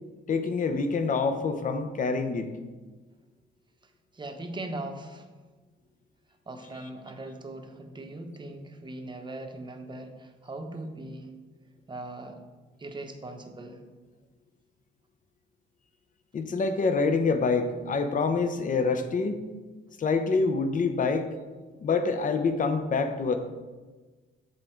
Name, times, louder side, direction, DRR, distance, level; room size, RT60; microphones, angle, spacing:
voice 1, 0.3-2.6 16.3-19.4 20.0-21.3 21.8-23.4, left 4 dB, 40° left, 8 dB, 0.7 m, -26 dB
voice 2, 4.1-5.3 6.5-11.3 11.9-12.4 12.8-13.8, right 2 dB, 25° right, 5 dB, 0.8 m, -40 dB
7.6 x 3.7 x 4.5 m, 1.3 s
cardioid pair, 90°, 20 cm